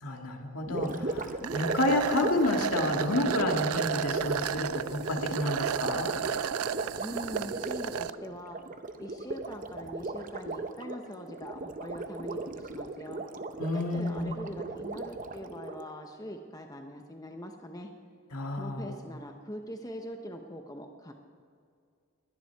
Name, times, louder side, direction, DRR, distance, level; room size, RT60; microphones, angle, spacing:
voice 1, 0.0-6.1 13.6-14.3 18.3-18.9, left 1 dB, 80° left, 3 dB, 1.9 m, -30 dB
Gurgling, 0.6-15.9, right 2 dB, 35° right, 0.7 m, -37 dB
sound 1, 1.4-8.1, right 9 dB, 80° right, 0.4 m, -33 dB
voice 2, 7.0-8.6 9.0-13.2 13.7-17.9 18.5-21.1, equal, 15° left, 4 dB, 0.9 m, -42 dB
21.0 x 10.0 x 4.6 m, 2.2 s
head